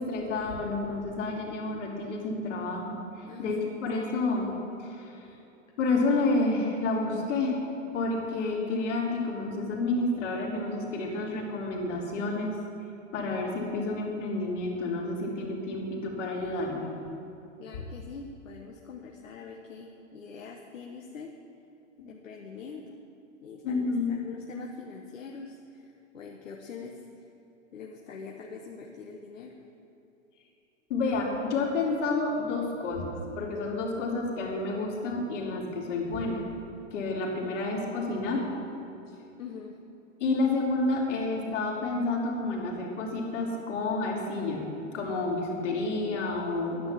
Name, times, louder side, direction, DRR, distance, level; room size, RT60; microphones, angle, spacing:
voice 1, 0.0-4.5 4.8-5.3 5.8-7.6 7.9-12.6 13.1-16.9 23.6-24.3 30.9-36.4 36.9-38.5 40.2-44.7 44.9-46.9, left 3 dB, 65° left, -2 dB, 3.5 m, -30 dB
voice 2, 17.6-21.3 22.1-23.0 23.4-27.2 27.7-29.5 37.5-37.6 39.4-39.8, left 5 dB, 85° left, 1 dB, 1.3 m, -44 dB
11.5 x 10.0 x 7.4 m, 2.9 s
hypercardioid pair, 120°, 38 cm